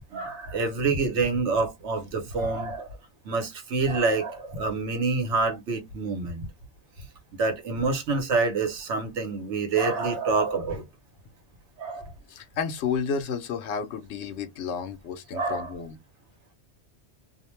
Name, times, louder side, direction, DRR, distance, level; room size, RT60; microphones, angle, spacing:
voice 1, 0.1-2.9 3.2-6.5 7.3-10.8 11.8-12.1 15.3-15.7, right 4 dB, 85° right, 1.1 m, -27 dB
voice 2, 12.3-16.0, left 6 dB, 80° left, 0.9 m, -31 dB
2.4 x 2.1 x 3.0 m
omnidirectional pair, 1.2 m